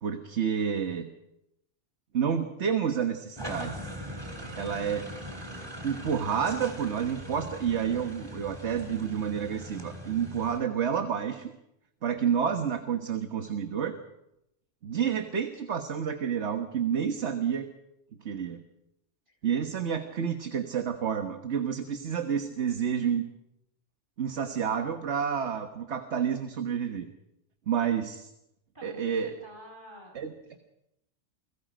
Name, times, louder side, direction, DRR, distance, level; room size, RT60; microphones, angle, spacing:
voice 1, 0.0-1.1 2.1-3.9 4.6-5.1 5.8-11.5 12.0-14.0 14.8-17.7 18.2-18.6 19.4-23.2 24.2-27.1 27.7-28.3 28.8-29.4 30.2-30.6, right 7 dB, 70° right, 6 dB, 1.6 m, -29 dB
sound 1, 3.4-10.6, equal, 20° right, 3.6 m, -41 dB
voice 2, 28.7-30.2, equal, 45° right, 2 dB, 6.4 m, -49 dB
29.0 x 21.5 x 5.1 m, 0.85 s
omnidirectional pair, 1.2 m